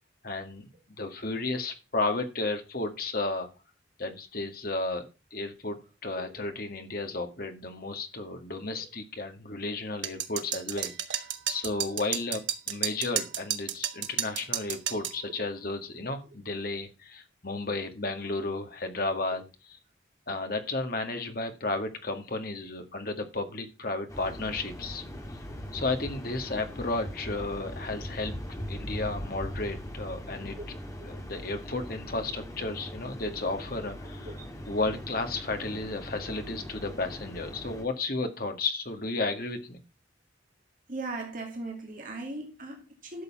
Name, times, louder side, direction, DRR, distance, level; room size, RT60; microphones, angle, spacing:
voice 1, 0.2-0.7 1.0-3.5 4.0-19.8 20.3-25.0 25.7-28.3 28.7-30.6 31.0-34.3 34.7-39.8, left 3 dB, 50° left, 6 dB, 2.0 m, -33 dB
sound 1, 10.0-15.2, right 10 dB, 75° right, 1.5 m, -32 dB
sound 2, 24.1-37.8, equal, 15° left, 1.9 m, -40 dB
voice 2, 30.5-30.8 34.2-34.5 40.9-43.2, right 2 dB, 45° right, 1 dB, 2.4 m, -39 dB
12.0 x 6.9 x 5.6 m, 0.30 s
head